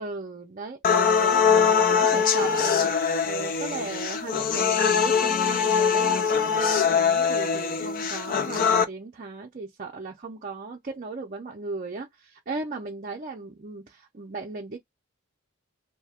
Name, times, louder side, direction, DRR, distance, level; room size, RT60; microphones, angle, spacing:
voice 1, 0.0-14.8, right 3 dB, 40° right, 0.5 m, -36 dB
sound 1, 0.8-8.8, left 6 dB, 40° left, 0.4 m, -22 dB
2.8 x 2.2 x 3.4 m
head